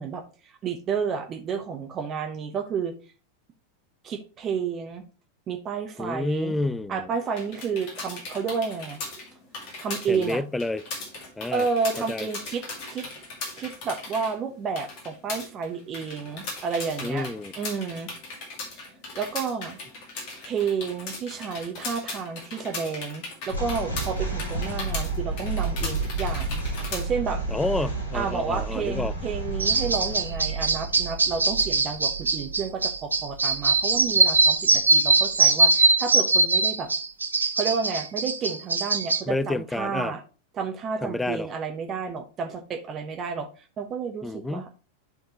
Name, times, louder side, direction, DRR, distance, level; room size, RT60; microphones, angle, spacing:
voice 1, 0.0-2.9 4.0-5.0 5.5-6.5 6.9-9.0 9.8-10.4 11.5-13.1 13.5-17.3 17.6-18.1 19.1-19.8 20.4-26.6 26.9-27.4 28.1-36.9 37.6-40.2 40.5-44.9, right 5 dB, 30° right, 0.9 m, -31 dB
voice 2, 6.0-7.1 10.1-10.8 11.4-11.7 12.1-12.3 17.0-17.5 27.5-29.1 39.3-40.1 41.0-41.5 44.2-44.6, left 2 dB, 10° left, 0.3 m, -29 dB
sound 1, 7.3-27.1, left 3 dB, 45° left, 1.8 m, -38 dB
sound 2, 23.5-34.8, right 3 dB, 75° left, 2.3 m, -32 dB
sound 3, 29.6-39.2, right 3 dB, 80° right, 0.6 m, -22 dB
11.0 x 3.9 x 2.9 m
figure-of-eight pair, 90°, 0 cm